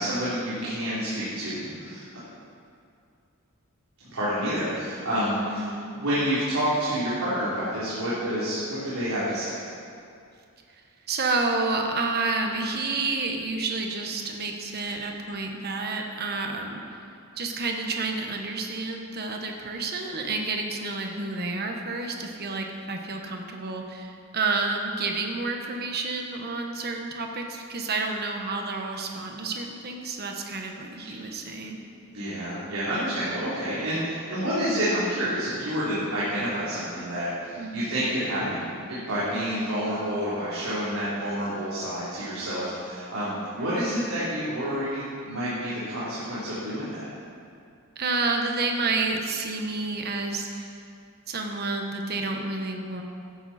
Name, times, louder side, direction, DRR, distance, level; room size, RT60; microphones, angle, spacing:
voice 1, 0.0-2.0 4.1-9.6 32.1-47.1, equal, 85° right, -11 dB, 3.5 m, -29 dB
voice 2, 5.4-6.0 11.1-16.8 17.4-31.8 37.6-38.0 43.6-43.8 47.9-50.8 51.3-53.0, right 3 dB, 50° right, 2 dB, 1.3 m, -30 dB
15.0 x 11.0 x 4.3 m, 2.4 s
head